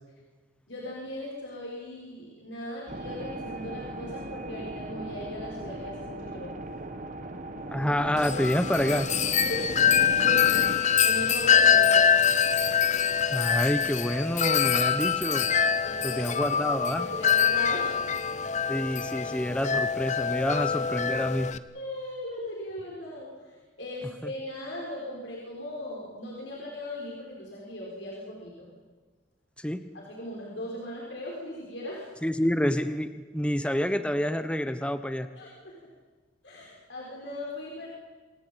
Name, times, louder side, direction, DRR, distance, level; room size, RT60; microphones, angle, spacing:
voice 1, 0.7-6.5 9.4-12.0 15.8-16.4 17.0-18.1 20.5-20.6 21.7-28.7 29.9-32.1 35.3-35.9 36.4-37.9, left 1 dB, 90° left, -3 dB, 5.9 m, -38 dB
sound 1, 2.9-10.8, right 1 dB, 45° right, 1.7 m, -38 dB
voice 2, 7.7-9.1 13.3-15.5 16.0-17.1 18.7-21.5 29.6-29.8 32.2-35.3, equal, 5° left, 9 dB, 1.0 m, -28 dB
Wind chime, 8.2-21.6, left 7 dB, 40° left, 0.8 m, -24 dB
28.0 x 17.5 x 8.9 m, 1.4 s
head